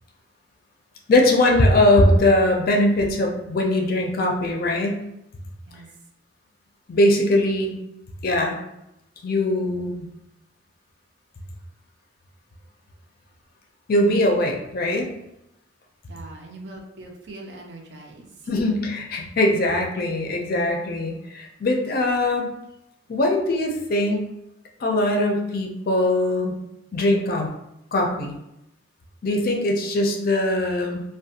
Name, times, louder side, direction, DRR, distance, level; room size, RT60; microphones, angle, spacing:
voice 1, 1.1-5.0 6.9-7.8 8.2-8.6 9.2-10.1 13.9-15.1 18.5-22.5 23.1-24.3 24.8-26.5 26.9-27.5 27.9-28.4 29.2-31.0, left 1 dB, 50° left, 1 dB, 0.4 m, -21 dB
voice 2, 16.1-18.3, right 2 dB, 65° right, 1 dB, 0.5 m, -41 dB
2.4 x 2.2 x 2.7 m, 0.85 s
head